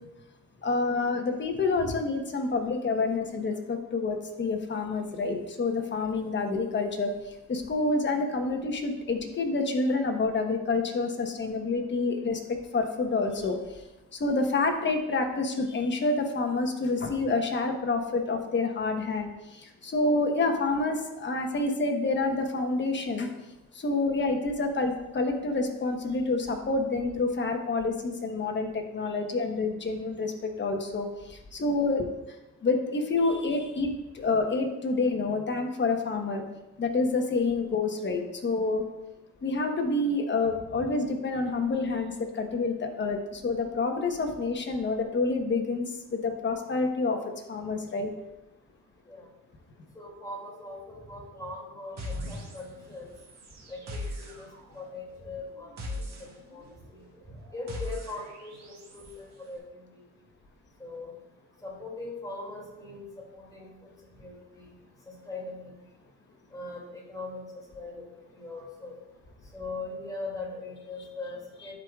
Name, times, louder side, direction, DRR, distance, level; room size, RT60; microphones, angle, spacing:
voice 1, 0.6-7.1 7.5-13.6 14.2-19.3 19.8-23.3 23.8-32.0 32.6-33.9 34.1-36.4 36.8-38.9 39.4-45.8 46.1-47.2 47.5-48.1, left 3 dB, 40° left, 4 dB, 1.2 m, -28 dB
voice 2, 49.9-53.1 53.7-54.5 54.7-56.7 57.5-59.6 59.9-60.0 60.8-61.1 61.6-63.9 64.2-64.8 65.3-65.7 66.5-67.4 67.7-68.0 68.3-69.0 69.5-71.7, left 2 dB, 10° left, -3 dB, 2.6 m, -40 dB
sound 1, 52.0-52.9 53.1-59.2, left 1 dB, 60° right, 1.9 m, -40 dB
11.5 x 4.8 x 2.4 m, 0.98 s
cardioid pair, 90°, 30 cm